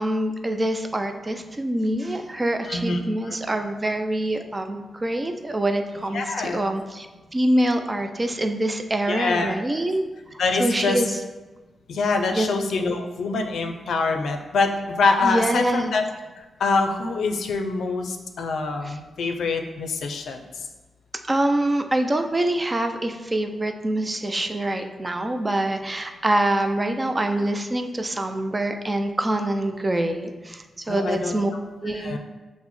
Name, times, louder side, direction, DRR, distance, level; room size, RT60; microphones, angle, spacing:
voice 1, 0.0-7.1 7.3-10.0 10.6-11.2 12.3-12.5 15.2-15.9 18.8-19.0 21.3-31.5 31.8-32.2, right 1 dB, 25° right, 6 dB, 0.3 m, -25 dB
voice 2, 2.6-3.4 6.1-6.6 9.1-9.5 10.4-11.1 11.9-16.0 16.6-20.4 30.9-31.3 31.9-32.2, left 3 dB, 80° left, 5 dB, 0.4 m, -25 dB
5.9 x 2.0 x 3.0 m, 1.2 s
cardioid pair, 80°, 0 cm